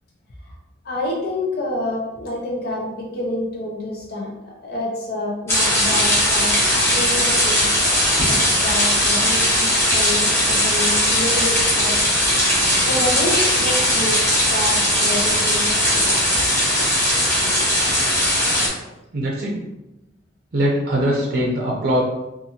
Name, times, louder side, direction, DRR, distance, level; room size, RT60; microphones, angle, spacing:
voice 1, 0.8-6.6 6.9-12.2 12.8-16.2, left 1 dB, 55° left, -2 dB, 0.5 m, -28 dB
sound 1, 5.5-18.7, equal, 15° left, 0.8 m, -18 dB
voice 2, 19.1-19.6 20.5-22.0, equal, 50° right, -3 dB, 0.5 m, -21 dB
2.6 x 2.5 x 2.7 m, 0.97 s
head